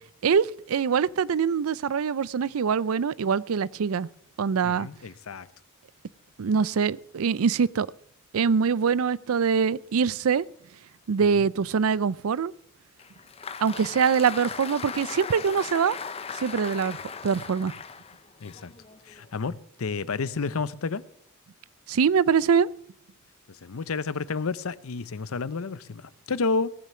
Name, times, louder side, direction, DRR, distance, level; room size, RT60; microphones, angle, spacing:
voice 1, 0.2-4.1 4.4-4.9 6.4-7.9 8.3-10.4 11.1-12.5 13.6-16.0 16.4-17.0 17.2-17.7 21.9-22.7, right 6 dB, 80° right, 0.4 m, -24 dB
voice 2, 4.6-5.5 11.2-11.5 18.4-18.7 19.0-21.0 23.5-26.7, left 4 dB, 80° left, 0.7 m, -31 dB
Applause, 13.0-19.3, left 6 dB, 30° left, 0.6 m, -38 dB
17.5 x 7.5 x 7.0 m
head